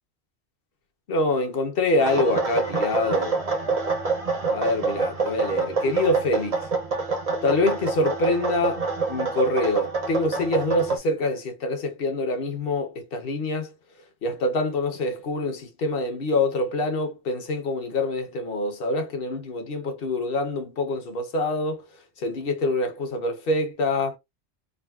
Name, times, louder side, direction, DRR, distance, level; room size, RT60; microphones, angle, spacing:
voice 1, 1.1-3.4 4.5-6.7 7.4-13.7 14.2-21.9 22.2-24.2, left 2 dB, 55° left, 0.9 m, -25 dB
sound 1, 2.0-11.0, right 4 dB, 40° right, 0.6 m, -27 dB
3.7 x 2.1 x 2.3 m
omnidirectional pair, 1.2 m